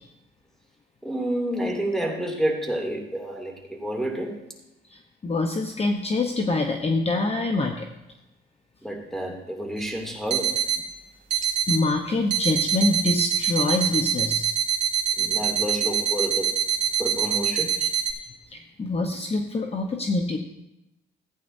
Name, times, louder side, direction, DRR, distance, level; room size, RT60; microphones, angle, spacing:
voice 1, 1.0-4.3 8.8-10.6 15.2-16.5 17.0-17.9, right 1 dB, ahead, 1 dB, 2.5 m, -29 dB
voice 2, 4.9-7.9 11.3-14.5 18.5-20.4, left 2 dB, 30° left, 4 dB, 0.9 m, -25 dB
sound 1, 9.8-9.9 10.3-10.8 11.3-11.8 12.3-18.1, right 9 dB, 65° right, 2.1 m, -25 dB
15.5 x 9.2 x 2.6 m, 0.93 s
cardioid pair, 90°, 20 cm